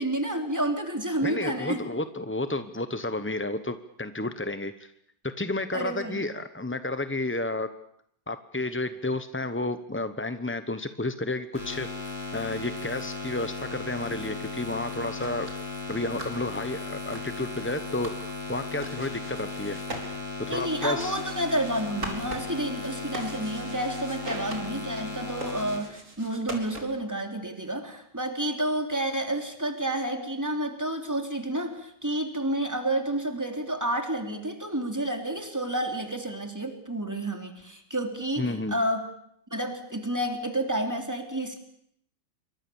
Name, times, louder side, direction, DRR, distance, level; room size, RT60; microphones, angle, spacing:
voice 1, 0.0-1.8 5.7-6.2 20.5-39.1 39.5-41.6, right 1 dB, 10° right, 4 dB, 3.4 m, -30 dB
voice 2, 1.2-4.9 5.4-7.7 8.3-11.9 12.3-15.5 15.9-18.1 18.5-19.8 20.5-21.2 38.4-38.8, left 2 dB, 15° left, 10 dB, 0.5 m, -31 dB
sound 1, 11.5-25.8, left 3 dB, 35° left, 7.3 m, -36 dB
sound 2, 15.2-27.1, right 2 dB, 40° right, 4.3 m, -43 dB
27.5 x 24.0 x 7.1 m, 0.72 s
omnidirectional pair, 2.0 m